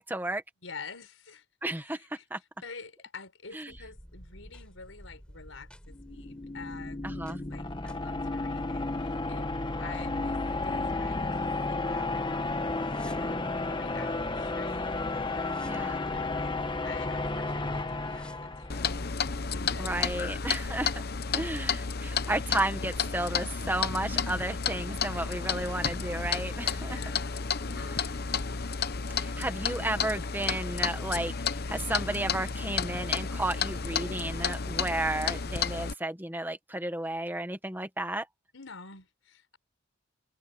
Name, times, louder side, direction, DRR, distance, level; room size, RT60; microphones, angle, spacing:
voice 1, 0.0-0.4 1.6-2.0 2.3-2.4 3.5-3.7 7.0-7.4 15.6-16.0 19.8-21.0 21.3-27.0 27.7-28.1 29.2-38.3, right 1 dB, 10° right, 1.6 m, -33 dB
voice 2, 0.6-1.4 1.8-2.2 2.6-12.6 13.1-13.4 13.7-20.8 26.6-27.4 38.5-39.6, left 4 dB, 90° left, 5.1 m, -48 dB
sound 1, 3.7-20.9, equal, 5° left, 7.1 m, -50 dB
sound 2, 5.9-19.1, left 2 dB, 25° left, 1.3 m, -32 dB
Clock, 18.7-35.9, left 6 dB, 50° left, 0.9 m, -32 dB
head